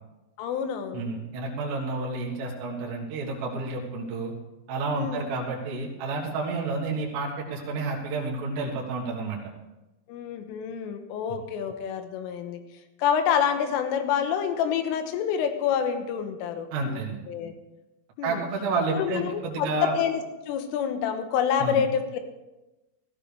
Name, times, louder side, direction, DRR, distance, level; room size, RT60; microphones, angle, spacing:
voice 1, 0.4-1.1 5.0-5.2 10.1-12.6 13.0-17.0 17.3-17.5 18.2-18.4 19.0-22.2, left 8 dB, 85° left, 7 dB, 3.6 m, -27 dB
voice 2, 0.9-4.3 4.7-9.4 16.7-17.2 18.2-19.9 21.6-21.8, right 3 dB, 65° right, -3 dB, 3.5 m, -30 dB
16.5 x 14.0 x 3.4 m, 1.0 s
omnidirectional pair, 5.7 m